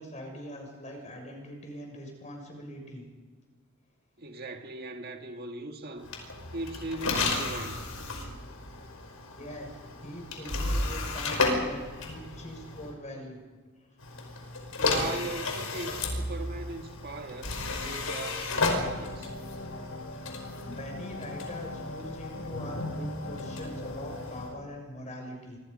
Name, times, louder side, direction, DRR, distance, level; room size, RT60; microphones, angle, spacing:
voice 1, 0.0-3.1 9.3-13.4 20.6-25.6, equal, 35° left, 6.5 m, -42 dB
voice 2, 4.2-6.1 6.5-8.0 14.8-19.3, right 2 dB, 50° right, 1.8 m, -39 dB
sound 1, 6.0-12.9 14.0-24.5, left 3 dB, 85° left, 5.2 m, -33 dB
sound 2, 18.8-24.6, left 2 dB, 65° left, 2.2 m, -39 dB
26.0 x 25.0 x 5.4 m
head